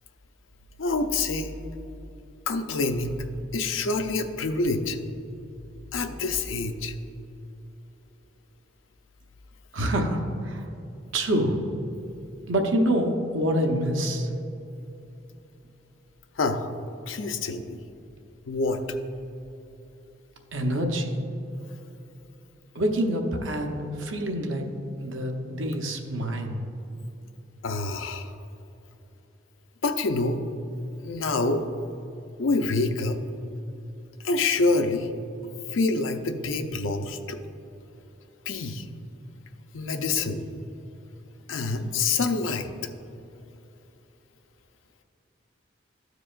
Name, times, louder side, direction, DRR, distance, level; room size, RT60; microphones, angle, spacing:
voice 1, 0.8-1.5 2.5-3.2 3.5-5.0 5.9-6.9 16.4-16.7 17.1-17.8 18.5-18.8 27.6-28.3 29.8-30.4 31.0-31.6 32.4-33.2 34.2-35.1 35.7-37.4 38.5-38.8 39.7-40.5 41.5-42.7, left 3 dB, 90° left, 6 dB, 0.6 m, -26 dB
voice 2, 9.7-10.6 11.1-11.6 12.5-14.3 20.5-21.1 22.7-24.6 25.0-26.7, right 1 dB, 85° right, 2 dB, 0.9 m, -26 dB
13.5 x 4.8 x 2.5 m, 2.8 s
head